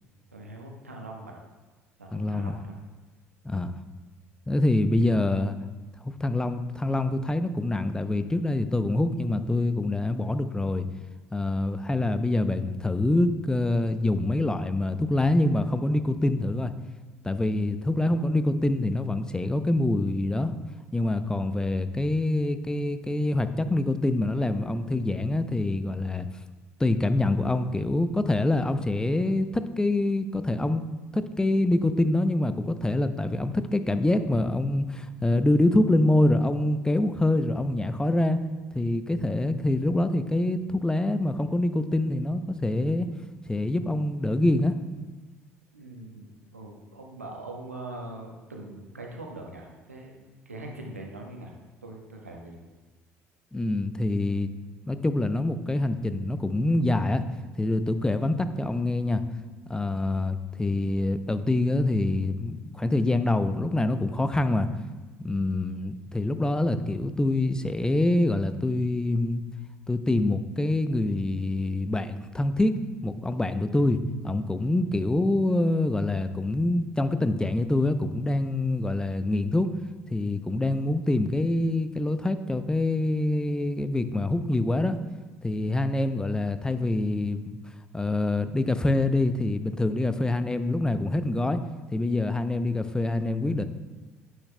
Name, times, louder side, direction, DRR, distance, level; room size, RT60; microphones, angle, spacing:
voice 1, 0.3-1.4 2.0-2.8 45.7-50.2 50.4-51.5 51.8-52.6, right 2 dB, 90° right, 0 dB, 1.1 m, -42 dB
voice 2, 2.1-2.6 3.4-3.8 4.5-5.6 6.2-10.9 11.3-16.7 17.2-20.5 20.9-26.3 26.8-30.8 31.1-38.4 38.7-43.1 43.5-44.8 53.5-54.5 54.9-57.2 57.6-59.2 59.7-64.7 65.2-69.4 69.9-79.7 80.1-85.0 85.4-87.6 87.9-91.6 91.9-93.7, left 2 dB, 10° left, 11 dB, 0.6 m, -25 dB
9.7 x 9.2 x 2.2 m, 1.3 s
figure-of-eight pair, 60°, 8 cm